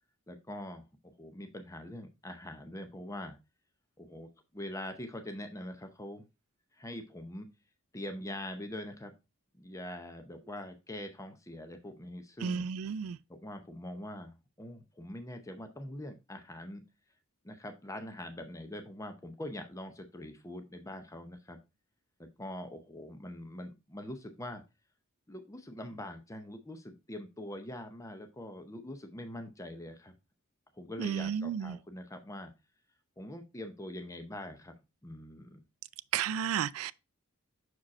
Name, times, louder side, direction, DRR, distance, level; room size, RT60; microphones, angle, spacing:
voice 1, 0.3-3.4 4.0-6.2 6.7-7.5 7.9-9.1 9.5-12.6 13.3-16.8 17.4-21.6 22.2-24.6 25.3-30.1 30.7-32.5 33.2-34.7 35.0-35.6, left 1 dB, 15° left, 0.6 m, -43 dB
voice 2, 12.4-13.2 31.0-31.8 36.1-36.9, right 8 dB, 70° right, 0.3 m, -32 dB
6.2 x 5.0 x 4.1 m
head